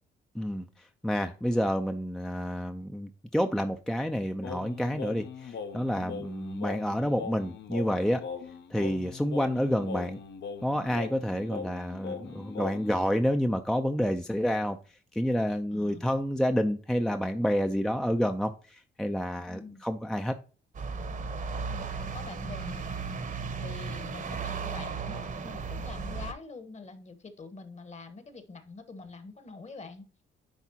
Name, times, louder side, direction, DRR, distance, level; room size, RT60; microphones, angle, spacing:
voice 1, 0.3-0.7 1.0-8.2 8.7-10.2 10.6-14.8 15.1-20.3, equal, ahead, 6 dB, 0.5 m, -29 dB
Singing, 4.4-13.0, left 5 dB, 65° left, 0.9 m, -40 dB
voice 2, 15.7-16.0 19.5-19.9 21.7-22.9 23.6-30.1, left 3 dB, 35° left, 10 dB, 1.2 m, -45 dB
sound 1, 20.7-26.3, right 5 dB, 40° right, 1.0 m, -35 dB
10.0 x 3.6 x 2.8 m, 0.37 s
cardioid pair, 90°, 20 cm